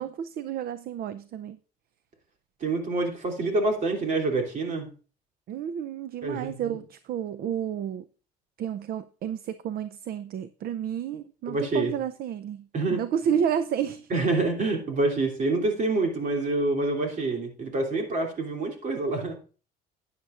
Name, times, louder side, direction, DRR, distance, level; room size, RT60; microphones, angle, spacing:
voice 1, 0.0-1.6 5.5-8.1 8.6-14.1, right 9 dB, 65° right, 0.6 m, -31 dB
voice 2, 2.6-4.9 6.2-6.8 11.5-11.9 12.7-13.0 14.1-19.4, right 2 dB, 45° right, 3.0 m, -27 dB
12.0 x 9.6 x 2.5 m
cardioid pair, 110°, 17 cm